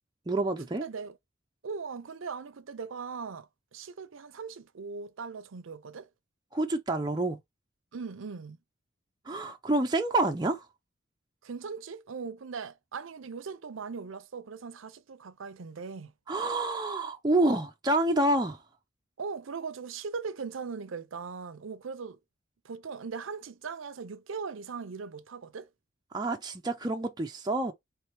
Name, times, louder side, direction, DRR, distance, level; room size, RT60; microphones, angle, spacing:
voice 1, 0.3-0.8 6.5-7.4 9.3-10.7 16.3-18.6 26.1-27.7, right 2 dB, 20° right, 0.5 m, -28 dB
voice 2, 0.8-1.2 1.6-6.1 7.9-8.6 11.4-16.1 19.2-22.2 22.6-25.7, right 5 dB, 80° right, 0.6 m, -39 dB
4.5 x 3.2 x 3.3 m
head